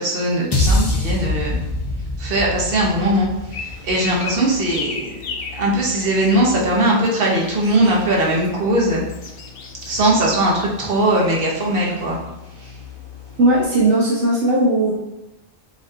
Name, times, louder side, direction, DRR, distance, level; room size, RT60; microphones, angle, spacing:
voice 1, 0.0-1.6 2.2-9.0 9.8-12.2 12.6-12.7, right 1 dB, 55° right, -3 dB, 1.2 m, -20 dB
sound 1, 0.5-4.9, left 2 dB, 45° left, 0.3 m, -24 dB
sound 2, 1.1-13.6, left 8 dB, 25° right, 1.3 m, -41 dB
sound 3, 3.5-14.3, left 4 dB, 60° left, 0.7 m, -38 dB
voice 2, 13.4-14.9, right 1 dB, 75° right, -3 dB, 1.0 m, -17 dB
7.5 x 2.8 x 2.4 m, 0.95 s
omnidirectional pair, 1.2 m